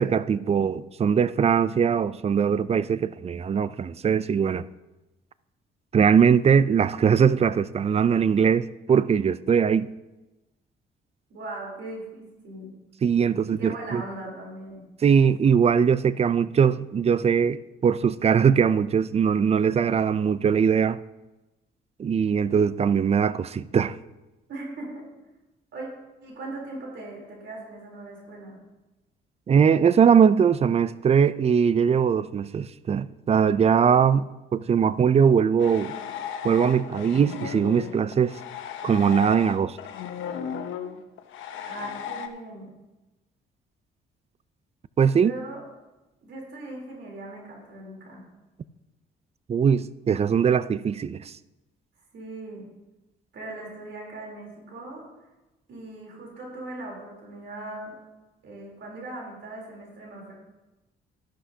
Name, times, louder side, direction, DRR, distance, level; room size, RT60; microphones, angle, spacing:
voice 1, 0.0-4.6 5.9-9.9 13.0-14.0 15.0-21.0 22.0-24.0 29.5-35.9 36.4-38.3 38.8-39.8 45.0-45.3 49.5-51.3, right 7 dB, 30° right, 0.4 m, -21 dB
voice 2, 11.3-12.7 13.5-14.8 24.5-25.1 25.7-25.9 26.2-28.6 41.7-42.7 45.1-45.6 46.2-48.2 52.1-52.7 53.3-55.0 55.7-57.9 58.4-60.3, right 2 dB, 70° right, 3.5 m, -39 dB
sound 1, 35.6-42.3, left 8 dB, 80° left, 0.9 m, -35 dB
13.0 x 11.5 x 2.8 m
cardioid pair, 90°, 20 cm